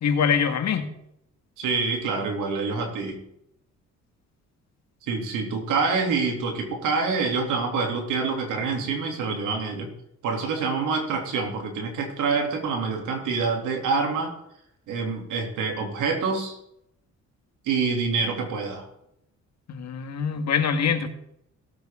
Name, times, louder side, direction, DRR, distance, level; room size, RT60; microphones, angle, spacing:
voice 1, 0.0-0.9 19.7-21.1, left 6 dB, 60° left, 7 dB, 1.7 m, -24 dB
voice 2, 1.6-3.2 5.0-9.9 10.2-14.3 14.9-16.6 17.6-18.8, right 4 dB, 90° right, 2 dB, 3.0 m, -26 dB
17.5 x 8.0 x 3.8 m, 0.77 s
cardioid pair, 90°, 30 cm